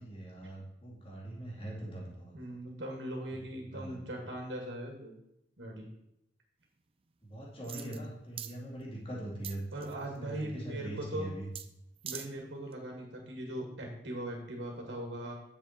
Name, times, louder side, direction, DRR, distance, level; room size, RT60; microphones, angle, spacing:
voice 1, 0.0-2.6 3.7-4.0 7.2-9.9 10.2-11.4, right 1 dB, 30° left, -3 dB, 2.5 m, -42 dB
voice 2, 2.3-5.1 5.6-5.9 7.7-8.0 9.7-11.3 12.0-15.3, right 1 dB, 85° right, 0 dB, 2.0 m, -40 dB
sound 1, 7.6-8.1 8.4-8.5 9.4-10.0 11.6-11.7 12.0-12.3 12.7-12.8, right 10 dB, 30° right, 0.5 m, -42 dB
9.2 x 7.2 x 4.3 m, 0.83 s
head